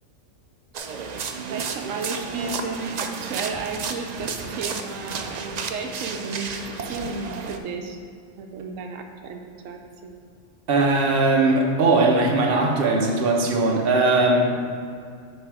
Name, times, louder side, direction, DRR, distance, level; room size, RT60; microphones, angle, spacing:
sound 1, 0.7-7.6, right 5 dB, 65° right, 0.4 m, -32 dB
voice 1, 1.4-8.0 8.4-10.3, right 4 dB, 85° right, 3 dB, 1.0 m, -33 dB
voice 2, 10.7-14.6, right 2 dB, 50° right, 1 dB, 1.1 m, -19 dB
9.7 x 3.8 x 4.8 m, 2.3 s
omnidirectional pair, 1.3 m